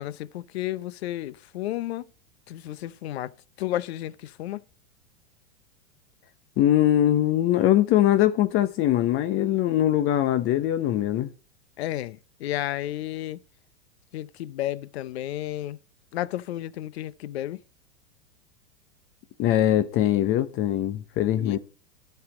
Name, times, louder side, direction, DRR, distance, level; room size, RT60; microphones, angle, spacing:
voice 1, 0.0-2.1 2.5-4.6 11.8-13.4 14.1-15.8 16.1-17.6 21.4-21.6, left 14 dB, 65° left, 0.8 m, -32 dB
voice 2, 6.6-11.3 19.4-21.6, left 12 dB, 40° left, 1.0 m, -22 dB
12.5 x 5.9 x 7.1 m
hypercardioid pair, 100°, 34 cm